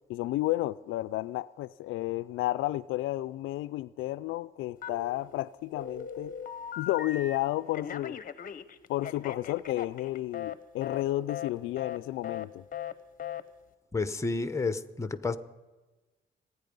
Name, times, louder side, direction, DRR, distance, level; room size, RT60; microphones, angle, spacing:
voice 1, 0.1-6.3 6.8-8.2 8.9-12.6, left 16 dB, 85° left, 17 dB, 0.4 m, -32 dB
Telephone, 4.8-5.4 5.8-7.4 7.7-10.6 10.8-11.0 11.3-11.5 11.8-12.0 12.2-12.5 12.7-12.9 13.2-13.4, left 8 dB, 45° left, 0.9 m, -38 dB
voice 2, 13.9-15.4, left 3 dB, 15° left, 12 dB, 1.0 m, -30 dB
27.5 x 9.7 x 5.4 m, 1.2 s
cardioid pair, 90°, 20 cm